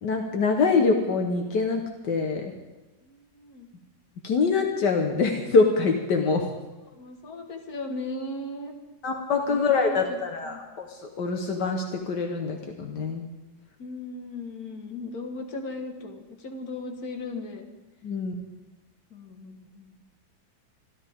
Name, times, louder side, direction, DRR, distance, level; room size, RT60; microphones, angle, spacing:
voice 1, 0.0-2.5 4.2-6.5 9.0-10.9 11.2-13.3 18.0-18.3, left 4 dB, 75° left, 3 dB, 1.8 m, -24 dB
voice 2, 3.0-3.7 6.9-8.7 9.5-10.2 10.5-10.6 13.8-17.7 19.1-19.9, left 2 dB, 60° left, 4 dB, 2.0 m, -37 dB
26.0 x 13.5 x 3.6 m, 1.1 s
omnidirectional pair, 1.9 m